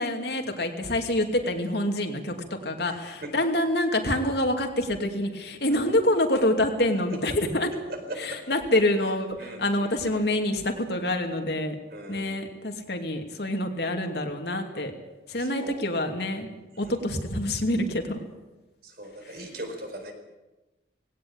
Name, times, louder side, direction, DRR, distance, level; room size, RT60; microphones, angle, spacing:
voice 1, 0.0-7.7 8.2-11.8 12.1-14.9 15.3-16.5 16.8-18.2 19.2-19.3, left 1 dB, 65° left, 4 dB, 2.6 m, -26 dB
voice 2, 2.9-3.3 5.7-5.9 7.9-8.5 9.4-10.2 11.9-12.4 15.4-15.8 16.8-16.9 18.8-20.1, right 1 dB, 55° right, 5 dB, 4.5 m, -40 dB
19.5 x 17.5 x 8.8 m, 1.1 s
head